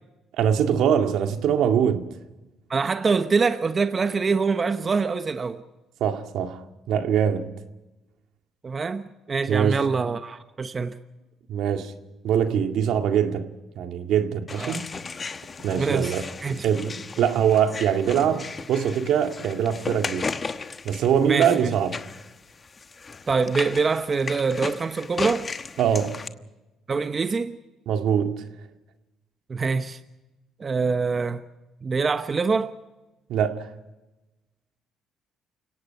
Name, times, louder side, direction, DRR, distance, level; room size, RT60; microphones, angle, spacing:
voice 1, 0.4-2.1 6.0-7.5 9.5-9.8 11.5-11.9 12.2-14.8 15.6-16.2 16.6-20.3 20.8-21.9 25.8-26.2 27.9-28.5 33.3-33.7, right 8 dB, 75° right, 2.1 m, -23 dB
voice 2, 2.7-5.6 8.6-9.0 9.3-11.0 14.6-14.8 15.8-16.1 16.4-16.7 21.2-21.7 23.3-25.5 26.9-27.6 29.5-30.0 30.6-31.4 31.8-32.7, right 4 dB, 35° right, 1.0 m, -24 dB
sound 1, 14.5-26.3, left 4 dB, 30° left, 1.1 m, -36 dB
29.0 x 17.5 x 5.8 m
cardioid pair, 95°, 0 cm